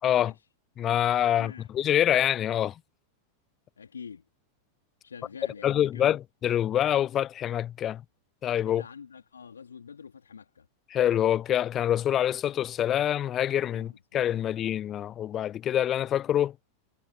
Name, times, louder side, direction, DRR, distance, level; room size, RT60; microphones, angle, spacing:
voice 1, 0.0-0.3 0.8-2.7 5.6-8.0 8.4-8.8 10.9-16.5, left 11 dB, 30° left, 0.5 m, -26 dB
voice 2, 1.3-1.7 3.8-4.2 5.0-6.2 8.6-10.7 13.7-14.6, left 6 dB, 70° left, 3.5 m, -46 dB
figure-of-eight pair, 90°, 0 cm